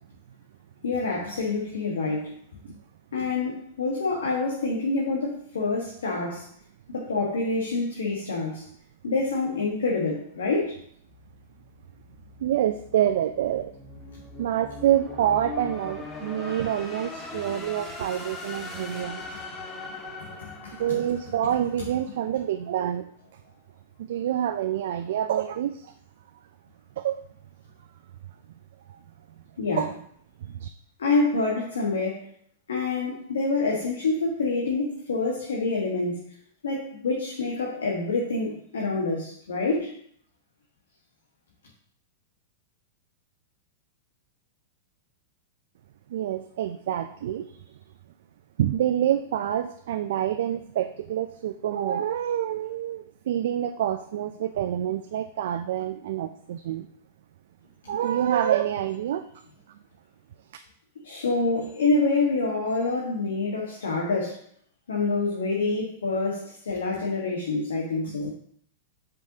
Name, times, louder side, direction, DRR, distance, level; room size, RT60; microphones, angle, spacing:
voice 1, 0.8-2.3 3.1-6.4 6.9-8.6 9.0-10.7 20.2-20.8 29.6-29.8 31.0-32.2 32.7-36.2 36.6-39.9 61.0-64.4 64.9-68.3, left 3 dB, 85° left, -2 dB, 1.3 m, -27 dB
sound 1, 11.1-22.1, left 3 dB, 25° left, 1.7 m, -41 dB
voice 2, 12.4-13.7 14.4-19.2 20.8-23.1 24.0-25.9 27.0-27.2 28.9-29.0 29.7-29.9 30.5-30.7 46.1-47.5 48.6-56.9 57.9-59.2, right 11 dB, 70° right, 8 dB, 0.4 m, -27 dB
7.7 x 5.3 x 2.8 m, 0.64 s
hypercardioid pair, 115°, 0 cm